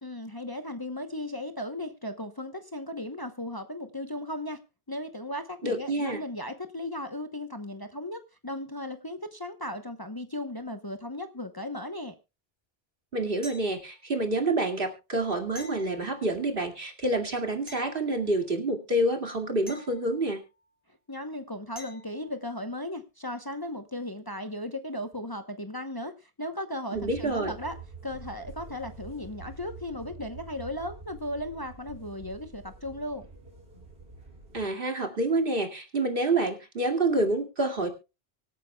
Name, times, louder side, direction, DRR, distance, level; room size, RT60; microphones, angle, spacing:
voice 1, 0.0-4.6 4.9-12.1 21.1-27.8 28.0-33.3, left 1 dB, 20° left, 7 dB, 0.9 m, -36 dB
voice 2, 5.6-6.2 13.1-20.4 26.9-27.5 34.5-37.9, right 2 dB, 60° right, 3 dB, 2.5 m, -28 dB
sound 1, 13.4-14.2 15.5-16.6 17.7-18.7 19.7-20.7 21.8-22.4 25.1-25.2, left 1 dB, 25° right, 3.3 m, -49 dB
sound 2, 26.9-34.7, right 4 dB, 85° right, 3.4 m, -46 dB
25.0 x 8.9 x 2.3 m, 0.28 s
omnidirectional pair, 1.1 m